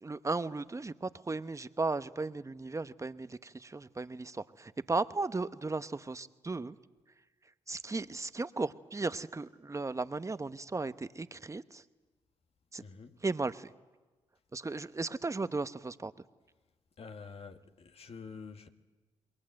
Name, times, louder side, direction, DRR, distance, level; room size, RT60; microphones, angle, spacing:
voice 1, 0.0-6.8 7.7-11.8 12.7-12.8 13.2-13.7 14.5-16.1, right 3 dB, 25° right, 1.0 m, -36 dB
voice 2, 12.8-13.2 17.0-18.7, left 5 dB, 55° left, 1.8 m, -47 dB
27.5 x 22.0 x 7.8 m
supercardioid pair, 50°, 12 cm